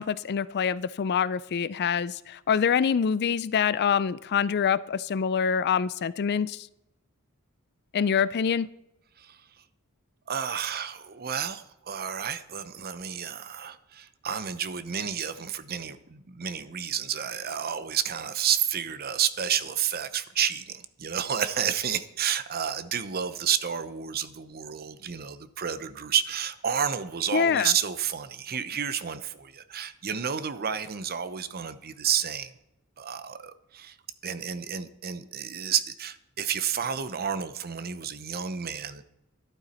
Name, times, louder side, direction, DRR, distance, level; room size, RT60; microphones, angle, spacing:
voice 1, 0.0-6.7 7.9-8.7 27.3-27.7, left 7 dB, 50° left, 18 dB, 0.4 m, -25 dB
voice 2, 10.3-32.5 33.0-34.0 34.2-39.0, right 8 dB, 45° right, 13 dB, 0.7 m, -30 dB
13.0 x 11.5 x 4.3 m, 0.87 s
head